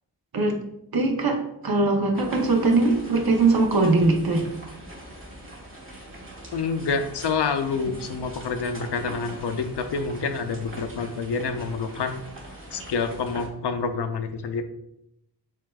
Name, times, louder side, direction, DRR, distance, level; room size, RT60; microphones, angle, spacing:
voice 1, 0.9-4.5, right 3 dB, 60° right, 3 dB, 0.8 m, -21 dB
sound 1, 2.1-13.5, right 1 dB, 30° right, 1.4 m, -41 dB
voice 2, 6.5-12.2 12.7-14.6, left 5 dB, 80° left, 8 dB, 0.5 m, -28 dB
7.3 x 2.5 x 2.3 m, 0.80 s
wide cardioid pair, 70°, 40 cm